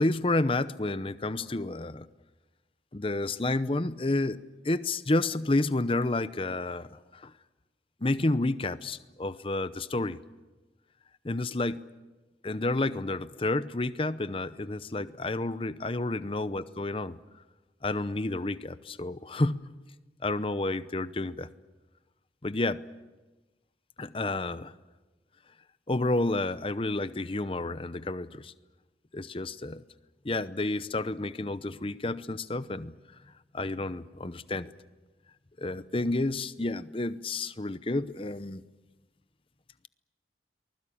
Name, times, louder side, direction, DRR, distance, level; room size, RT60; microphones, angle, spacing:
voice 1, 0.0-2.1 2.9-7.3 8.0-10.2 11.2-11.9 12.4-17.2 17.8-19.7 20.2-21.5 22.4-22.8 24.0-24.7 25.9-28.5 29.1-29.8 30.2-32.9 33.5-34.7 35.6-38.6, left 2 dB, 30° left, 14 dB, 0.7 m, -30 dB
24.0 x 20.5 x 8.7 m, 1.2 s
head